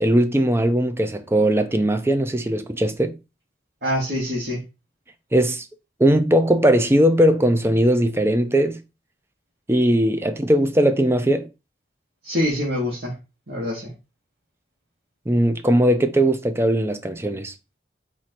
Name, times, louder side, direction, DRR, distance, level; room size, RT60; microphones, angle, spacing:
voice 1, 0.0-3.1 5.3-5.6 6.0-8.8 9.7-11.5 15.3-17.5, right 1 dB, 15° right, 0.5 m, -19 dB
voice 2, 3.8-4.6 12.2-13.2 13.5-13.9, left 1 dB, 65° right, 1.6 m, -25 dB
4.4 x 2.6 x 4.3 m
head